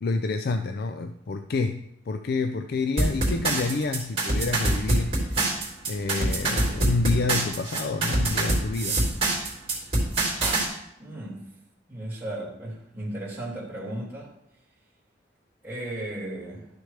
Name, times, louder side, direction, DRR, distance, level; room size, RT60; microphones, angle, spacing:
voice 1, 0.0-9.0, left 3 dB, 55° left, 7 dB, 0.4 m, -28 dB
sound 1, 3.0-10.7, right 2 dB, 35° right, 3.0 m, -25 dB
voice 2, 11.0-11.4 11.9-14.3 15.6-16.7, right 1 dB, 10° right, -7 dB, 3.3 m, -35 dB
12.0 x 6.4 x 3.3 m, 0.77 s
head